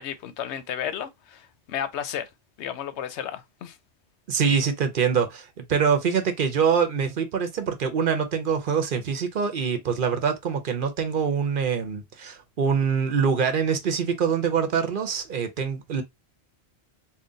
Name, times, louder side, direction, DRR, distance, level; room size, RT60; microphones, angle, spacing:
voice 1, 0.0-2.3 2.6-3.8, left 9 dB, 90° left, 0.9 m, -33 dB
voice 2, 4.3-16.0, right 6 dB, 55° right, 0.8 m, -24 dB
3.7 x 2.2 x 3.8 m
omnidirectional pair, 1.1 m